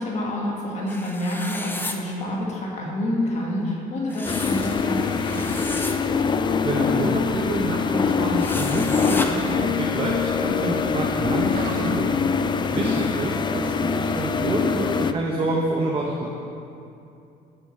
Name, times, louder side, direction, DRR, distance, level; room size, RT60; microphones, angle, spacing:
voice 1, 0.0-5.6 12.7-13.1, left 1 dB, 40° left, -3 dB, 1.9 m, -28 dB
sound 1, 0.9-2.0 4.1-6.0 8.4-9.3, left 2 dB, 10° left, 0.7 m, -33 dB
sound 2, 4.3-15.1, left 5 dB, 25° left, 0.3 m, -24 dB
sound 3, 5.1-12.9, right 3 dB, 60° right, 1.0 m, -44 dB
voice 2, 6.6-12.1 12.7-16.3, right 1 dB, 30° right, -2 dB, 1.0 m, -27 dB
8.9 x 5.3 x 6.4 m, 2.7 s
cardioid pair, 110°, 17 cm